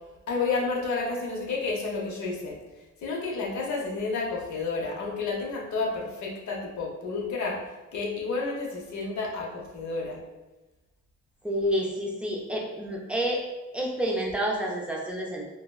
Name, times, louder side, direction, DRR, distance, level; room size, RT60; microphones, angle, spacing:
voice 1, 0.3-2.6 3.0-7.6 7.9-10.2, left 4 dB, 70° left, -2 dB, 0.8 m, -30 dB
voice 2, 11.4-13.4 13.7-15.5, equal, 5° right, -2 dB, 0.5 m, -29 dB
3.3 x 2.1 x 2.3 m, 1.1 s
cardioid pair, 90°, 30 cm